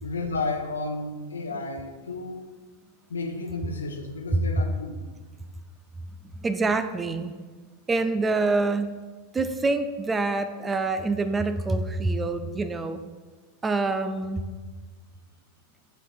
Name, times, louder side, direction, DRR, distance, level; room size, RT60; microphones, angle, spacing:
voice 1, 0.0-2.4 3.1-4.9, left 3 dB, 70° left, 4 dB, 0.9 m, -32 dB
voice 2, 6.4-7.4 7.9-9.0 9.3-13.0 13.6-14.4, right 3 dB, 15° right, 10 dB, 0.4 m, -26 dB
11.5 x 6.3 x 2.4 m, 1.4 s
figure-of-eight pair, 90°, 0 cm